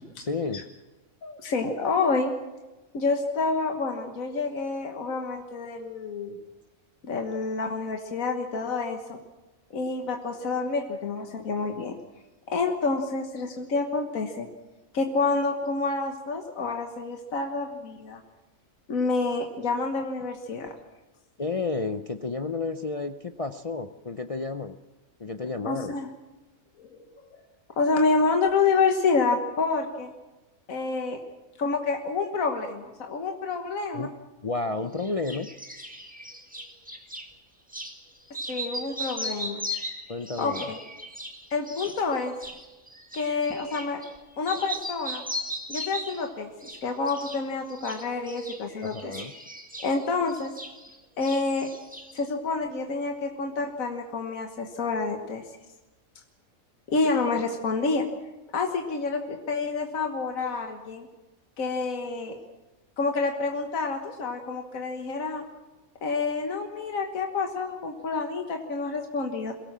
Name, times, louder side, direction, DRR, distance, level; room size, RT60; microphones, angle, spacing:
voice 1, 0.2-0.6 21.4-24.8 25.2-25.9 33.9-34.1 34.4-35.5 40.1-40.7 48.8-49.3, left 3 dB, 35° left, 7 dB, 0.6 m, -31 dB
voice 2, 1.2-2.3 2.9-6.4 7.0-9.2 9.7-12.0 12.5-14.5 14.9-18.2 18.9-20.7 25.7-26.1 26.8-27.0 27.3-27.4 27.8-30.1 30.7-31.2 31.6-34.1 38.5-39.6 40.4-40.8 41.5-42.3 43.1-44.0 44.4-45.2 45.7-49.1 49.8-50.5 51.2-51.7 52.1-55.5 56.9-58.1 58.5-61.1 61.6-62.4 63.0-65.4 66.0-69.5, left 4 dB, 75° left, 4 dB, 1.8 m, -28 dB
sound 1, 35.0-37.3 37.7-38.0 38.3-44.2 44.4-46.3 46.6-47.4 47.7-51.0 51.2-52.2, equal, 5° right, 2.0 m, -37 dB
22.5 x 18.0 x 7.5 m, 1.1 s
omnidirectional pair, 1.4 m